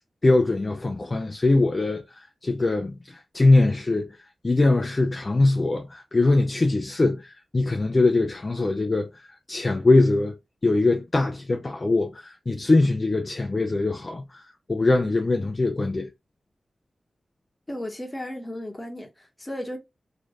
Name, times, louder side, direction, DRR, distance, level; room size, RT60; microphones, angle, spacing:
voice 1, 0.2-4.2 4.4-10.3 10.6-14.4 14.7-16.1, left 2 dB, 35° left, 0.5 m, -22 dB
voice 2, 17.7-19.8, left 1 dB, 20° left, 1.2 m, -34 dB
3.1 x 3.0 x 2.5 m
cardioid pair, 65°, 0 cm